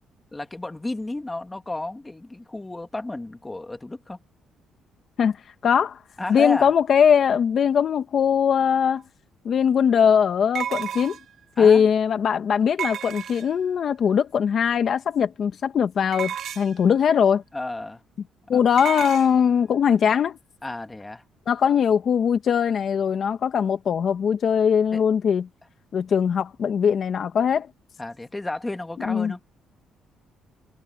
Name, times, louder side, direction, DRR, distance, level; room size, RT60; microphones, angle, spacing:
voice 1, 0.3-4.2 6.2-6.7 11.6-11.9 17.5-18.0 18.5-18.6 20.6-21.2 24.9-25.0 28.0-29.4, left 2 dB, 15° left, 2.1 m, -32 dB
voice 2, 5.6-6.0 6.3-9.0 9.4-11.2 11.6-17.4 18.5-20.4 21.5-25.5 25.9-27.7 29.0-29.3, left 7 dB, 50° left, 1.3 m, -21 dB
sound 1, 9.0-9.1 10.5-11.4 12.8-13.7 16.1-16.8 18.8-19.3, right 9 dB, 60° right, 0.9 m, -32 dB
cardioid pair, 125°, 0 cm